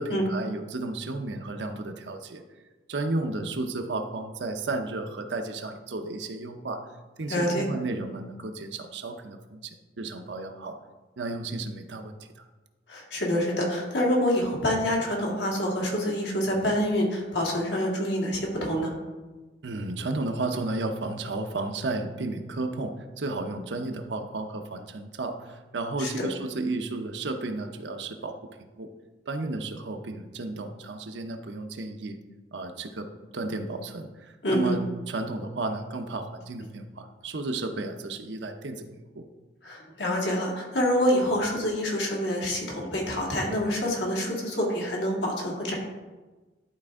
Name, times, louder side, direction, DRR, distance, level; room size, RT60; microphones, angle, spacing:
voice 1, 0.0-2.4 2.9-6.8 7.2-10.8 11.2-12.4 19.6-28.4 28.8-28.9 29.3-32.2 32.5-33.1 33.3-39.3, right 2 dB, 80° right, 7 dB, 0.7 m, -33 dB
voice 2, 7.3-7.7 12.9-18.9 26.0-26.3 34.4-34.8 39.6-45.7, equal, 75° left, -2 dB, 1.9 m, -26 dB
11.0 x 4.3 x 3.6 m, 1.2 s
head